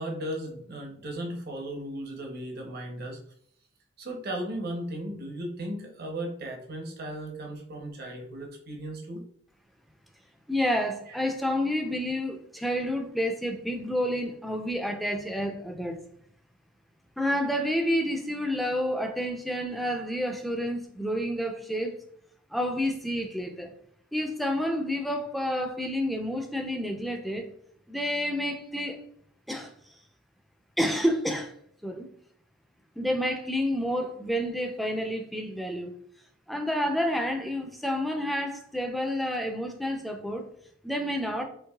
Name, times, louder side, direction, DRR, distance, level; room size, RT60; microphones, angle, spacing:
voice 1, 0.0-3.2 4.0-9.2 11.1-11.2, right 1 dB, 55° right, 0.8 m, -36 dB
voice 2, 10.5-16.0 17.2-21.9 22.5-23.7 24.1-27.5 27.9-29.0 29.5-29.7 30.8-31.5 31.8-32.1 33.0-35.9 36.5-40.4 40.8-41.4, equal, ahead, 0.4 m, -29 dB
4.7 x 3.0 x 2.3 m
head